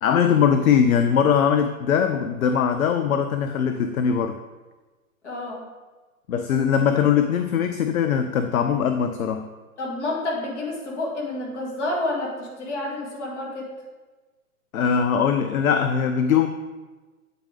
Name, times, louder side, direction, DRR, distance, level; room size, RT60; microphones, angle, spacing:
voice 1, 0.0-4.4 6.3-9.5 14.7-16.5, left 7 dB, 70° left, 8 dB, 0.5 m, -21 dB
voice 2, 5.2-5.7 9.8-13.7, left 2 dB, 50° left, -2 dB, 1.9 m, -29 dB
8.4 x 3.8 x 3.6 m, 1.2 s
figure-of-eight pair, 125°, 44 cm